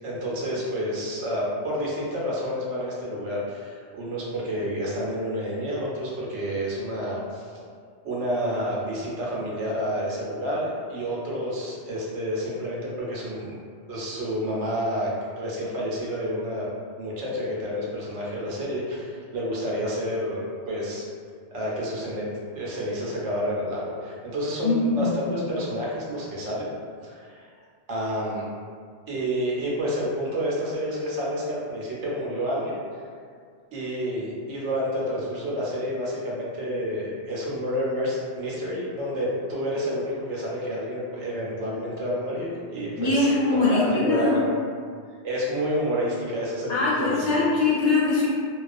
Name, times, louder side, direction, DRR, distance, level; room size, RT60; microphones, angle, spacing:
voice 1, 0.0-7.5 8.0-13.5 13.9-15.1 15.4-16.7 17.0-21.0 21.5-22.2 22.5-26.7 27.0-27.5 27.9-28.4 29.1-32.7 33.7-44.5 45.2-47.4, equal, 80° right, -5 dB, 1.0 m, -29 dB
voice 2, 24.6-25.6 43.0-44.4 46.7-48.3, left 3 dB, 75° left, -7 dB, 1.0 m, -22 dB
2.4 x 2.3 x 2.4 m, 2.1 s
omnidirectional pair, 1.2 m